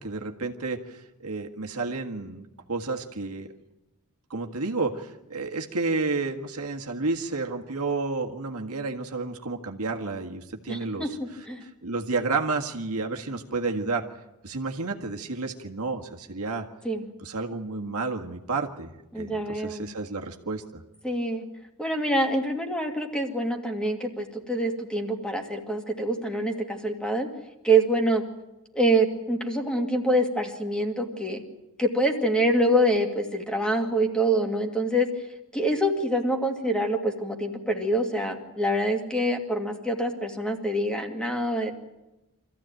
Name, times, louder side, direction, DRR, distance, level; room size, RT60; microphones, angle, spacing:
voice 1, 0.0-3.5 4.3-14.1 14.4-16.7 17.2-20.8, right 3 dB, 75° right, 3 dB, 1.8 m, -31 dB
voice 2, 10.7-11.1 11.5-11.6 16.8-17.0 19.1-19.8 21.0-21.4 21.8-27.3 27.6-28.2 28.7-31.4 31.8-35.1 35.5-41.7, right 1 dB, 5° left, 3 dB, 2.3 m, -25 dB
25.5 x 15.0 x 9.1 m, 0.98 s
head